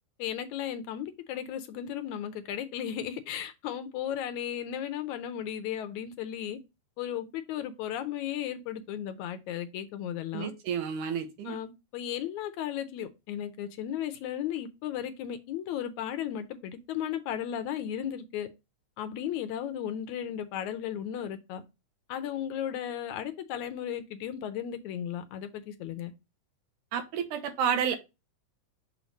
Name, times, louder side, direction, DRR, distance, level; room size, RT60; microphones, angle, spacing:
voice 1, 0.2-6.6 7.0-10.5 11.5-18.5 19.0-21.6 22.1-26.1, left 10 dB, 80° left, 1.9 m, -35 dB
voice 2, 10.3-11.6 26.9-28.0, right 7 dB, 80° right, 2.4 m, -30 dB
6.3 x 3.0 x 5.1 m
omnidirectional pair, 3.6 m